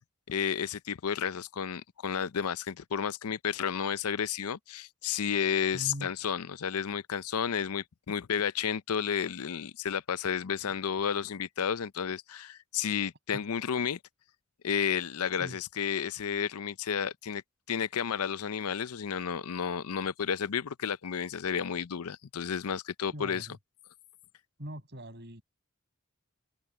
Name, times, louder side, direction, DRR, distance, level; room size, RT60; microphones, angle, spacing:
voice 1, 0.3-14.0 14.6-17.4 17.7-23.5, left 7 dB, 90° left, 0.6 m, -32 dB
voice 2, 5.7-6.1 15.4-15.6 23.1-23.6 24.6-25.4, equal, 50° right, 7.7 m, -41 dB
head